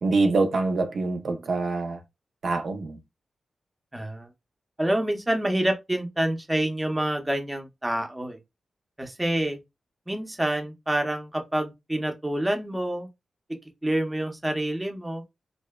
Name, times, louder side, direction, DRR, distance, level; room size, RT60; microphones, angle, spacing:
voice 1, 0.0-2.0 2.4-3.0, right 3 dB, 65° right, 0.4 m, -25 dB
voice 2, 3.9-4.3 4.8-8.4 9.0-9.6 10.1-13.1 13.8-15.2, right 1 dB, 15° right, 0.6 m, -27 dB
2.6 x 2.1 x 2.2 m
cardioid pair, 85°, 0 cm